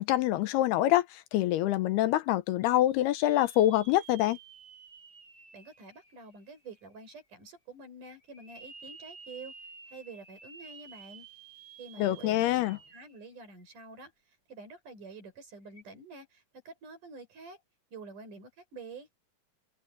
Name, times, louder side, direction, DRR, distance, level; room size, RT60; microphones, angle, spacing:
voice 1, 0.0-4.4 12.0-12.8, left 14 dB, 85° left, 3.0 m, -26 dB
sound 1, 2.6-6.6 7.1-7.2 8.3-13.2 13.6-13.7 15.7-15.8, right 5 dB, 25° left, 8.6 m, -52 dB
voice 2, 5.5-9.5 9.9-11.3 11.8-12.6 12.9-17.6 17.9-19.1, right 3 dB, 55° right, 8.0 m, -48 dB
omnidirectional pair, 4.5 m